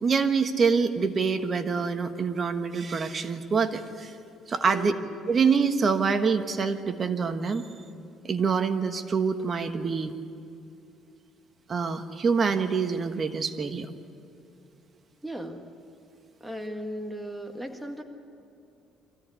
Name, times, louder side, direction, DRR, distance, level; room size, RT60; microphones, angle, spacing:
voice 1, 0.0-4.2 4.5-4.9 5.3-7.6 8.2-10.1 11.7-13.9, right 5 dB, 35° right, 7 dB, 1.3 m, -25 dB
voice 2, 4.7-5.1 15.2-15.6 16.4-18.0, right 1 dB, 5° right, 3 dB, 1.8 m, -36 dB
25.0 x 16.0 x 9.7 m, 2.7 s
cardioid pair, 120°, 0 cm